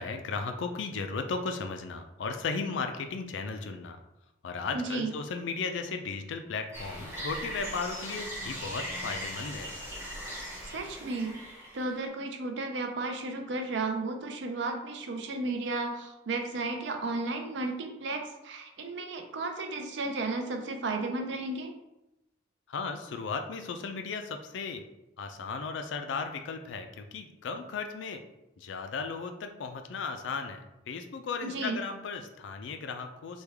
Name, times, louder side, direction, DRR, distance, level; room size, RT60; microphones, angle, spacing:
voice 1, 0.0-4.0 4.4-9.7 22.7-24.8 25.2-28.2 28.6-33.4, left 4 dB, 85° left, 6 dB, 0.4 m, -35 dB
voice 2, 4.7-5.1 10.7-11.4 11.7-21.7 31.4-31.8, right 3 dB, 75° right, 4 dB, 0.5 m, -33 dB
sound 1, 6.7-12.0, equal, 15° right, 0.7 m, -39 dB
3.2 x 2.3 x 3.3 m, 0.93 s
head